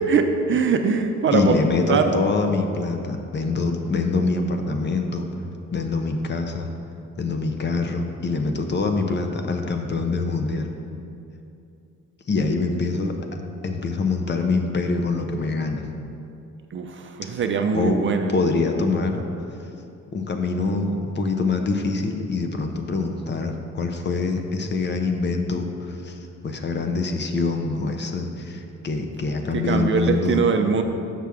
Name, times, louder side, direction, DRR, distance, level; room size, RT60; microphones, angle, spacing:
voice 1, 0.1-1.6 1.9-2.1 16.7-18.3 29.5-30.8, right 5 dB, 40° right, 6 dB, 0.5 m, -22 dB
voice 2, 1.3-5.3 5.7-6.7 7.2-10.7 12.3-13.1 13.6-15.9 17.7-18.0 18.3-19.2 20.1-26.2 26.4-30.4, left 3 dB, 35° left, 5 dB, 0.6 m, -24 dB
6.1 x 5.8 x 3.5 m, 2.6 s
cardioid pair, 90°, 30 cm